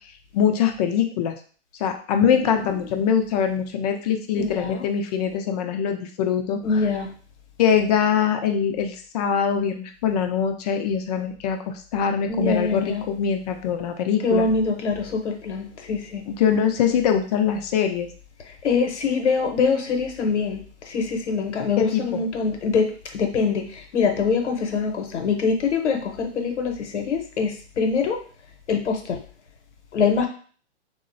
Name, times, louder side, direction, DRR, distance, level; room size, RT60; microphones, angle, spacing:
voice 1, 0.3-1.4 1.8-6.6 7.6-11.6 11.9-14.4 16.3-18.1 21.8-22.2, left 8 dB, 35° left, 5 dB, 0.4 m, -23 dB
voice 2, 2.2-2.7 4.4-4.8 6.6-7.1 12.3-13.0 14.2-16.2 18.6-20.6 20.9-22.9 23.1-23.6 23.9-28.2 28.7-29.2 29.9-30.3, left 5 dB, 85° left, 4 dB, 0.8 m, -24 dB
3.6 x 2.1 x 2.5 m, 0.42 s
hypercardioid pair, 130°, 34 cm